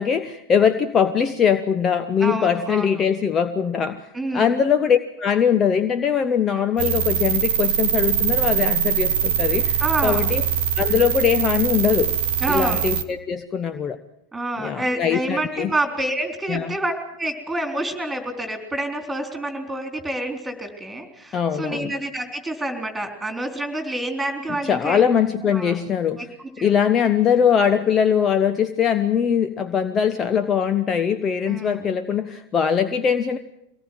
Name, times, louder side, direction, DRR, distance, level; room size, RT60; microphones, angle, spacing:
voice 1, 0.0-10.4 10.8-12.1 12.5-14.0 14.6-15.7 16.5-16.7 21.3-21.9 24.7-26.3 26.6-33.4, left 7 dB, 25° left, 10 dB, 0.9 m, -21 dB
voice 2, 2.2-3.0 4.1-4.5 9.5-10.3 12.4-12.9 14.3-25.0 25.4-25.8 26.2-26.3 26.6-26.7 31.5-31.9, right 1 dB, 10° right, 5 dB, 4.0 m, -28 dB
sound 1, 6.8-13.0, right 9 dB, 50° right, 1.3 m, -22 dB
23.5 x 18.5 x 7.7 m, 0.83 s
figure-of-eight pair, 90°, 0 cm